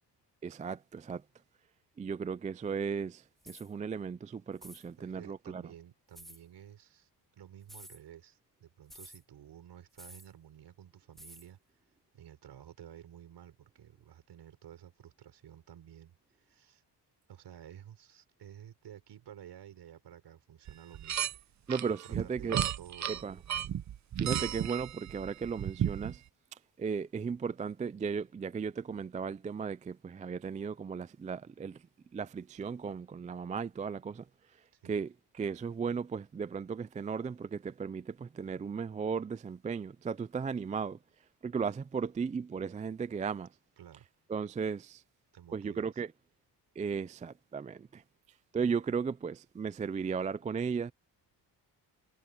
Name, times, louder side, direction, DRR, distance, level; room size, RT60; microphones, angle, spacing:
voice 1, 0.4-1.2 2.0-5.6 21.7-22.6 23.1-23.4 24.2-26.2 26.5-31.8 32.1-34.3 34.9-41.0 41.4-43.5 44.3-45.0 45.5-46.1 46.8-48.0 48.5-50.9, right 6 dB, 20° right, 0.3 m, -36 dB
sound 1, 3.4-3.7 4.6-4.9 6.1-6.4 7.6-8.0 8.9-9.2 10.0-10.3 11.2-11.5, equal, ahead, 2.3 m, -51 dB
voice 2, 5.0-11.6 12.1-16.8 17.3-21.3 22.2-23.8 34.8-35.0 43.8-44.0 45.3-45.8, right 10 dB, 75° right, 4.7 m, -53 dB
sound 2, 20.7-21.4 21.7-26.2, right 10 dB, 40° right, 0.7 m, -34 dB
cardioid pair, 145°, 42 cm